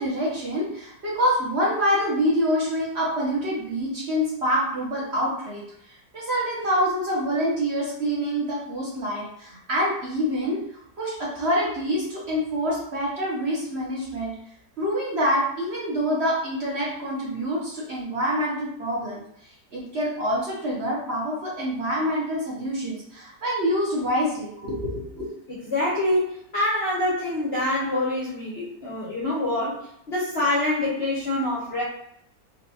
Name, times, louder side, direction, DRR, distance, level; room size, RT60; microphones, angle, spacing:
voice 1, 0.0-5.6 6.1-10.6 11.0-14.3 14.8-19.2 19.7-25.2, equal, 45° right, -6 dB, 1.0 m, -26 dB
voice 2, 25.5-31.8, left 1 dB, 50° left, -6 dB, 0.8 m, -26 dB
4.2 x 2.5 x 2.7 m, 0.71 s
omnidirectional pair, 1.9 m